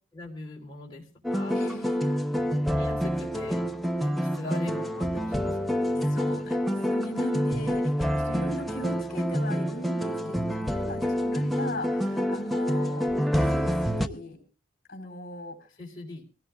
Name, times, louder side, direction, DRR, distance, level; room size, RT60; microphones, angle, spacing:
voice 1, 0.1-1.6 2.6-3.6 4.0-6.2 15.8-16.2, left 2 dB, 25° left, -3 dB, 3.6 m, -41 dB
sound 1, 1.2-14.1, equal, ahead, 0.6 m, -27 dB
voice 2, 1.5-2.2 6.1-13.1 13.3-14.4 14.9-15.7, left 1 dB, 50° left, 2 dB, 3.7 m, -39 dB
24.5 x 16.5 x 2.3 m, 0.34 s
head